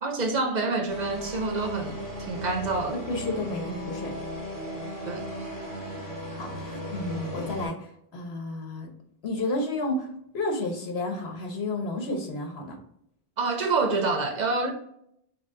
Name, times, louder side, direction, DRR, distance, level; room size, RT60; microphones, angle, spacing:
voice 1, 0.0-3.0 5.1-5.2 13.4-14.7, right 3 dB, 50° right, 0.6 m, -27 dB
sound 1, 0.9-7.7, equal, 20° left, 1.0 m, -36 dB
voice 2, 3.1-4.1 6.3-8.9 9.2-10.1 10.3-12.8, left 2 dB, 80° left, 1.2 m, -31 dB
6.2 x 2.2 x 3.7 m
omnidirectional pair, 1.0 m